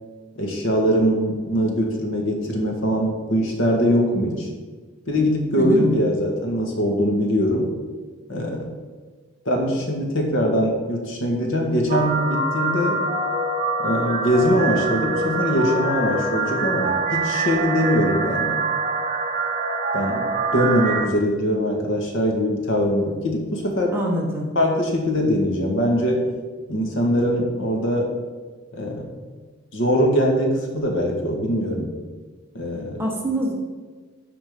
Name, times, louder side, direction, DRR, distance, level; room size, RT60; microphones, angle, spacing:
voice 1, 0.4-4.5 5.1-7.7 8.3-8.7 9.5-13.0 13.8-18.6 19.9-20.2 20.5-24.0 24.6-26.3 26.7-28.1 28.7-29.1 29.7-31.9 32.5-33.0, equal, 75° left, 1 dB, 1.9 m, -22 dB
sound 1, 11.9-21.1, right 3 dB, 35° right, 0.9 m, -25 dB
voice 2, 23.9-24.5 33.0-33.5, equal, 10° right, -1 dB, 1.3 m, -24 dB
13.0 x 4.4 x 5.3 m, 1.4 s
head